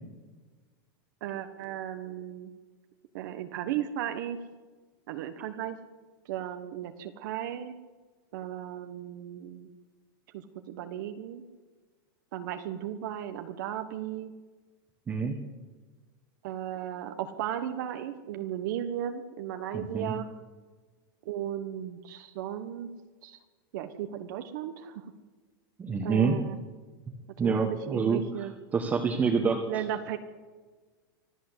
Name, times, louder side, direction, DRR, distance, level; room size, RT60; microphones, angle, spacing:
voice 1, 1.2-2.5 3.1-4.4 5.1-5.8 6.2-7.8 8.3-9.7 10.3-11.4 12.3-14.3 16.4-20.3 21.2-22.9 23.2-23.4 23.7-25.1 26.0-26.6 27.4-28.5 29.7-30.2, right 11 dB, 55° right, 7 dB, 1.4 m, -35 dB
voice 2, 15.1-15.4 19.7-20.1 25.8-26.4 27.4-28.2 28.7-29.6, right 5 dB, 15° right, 2 dB, 1.5 m, -26 dB
25.5 x 15.5 x 8.2 m, 1.4 s
supercardioid pair, 170°, 12 cm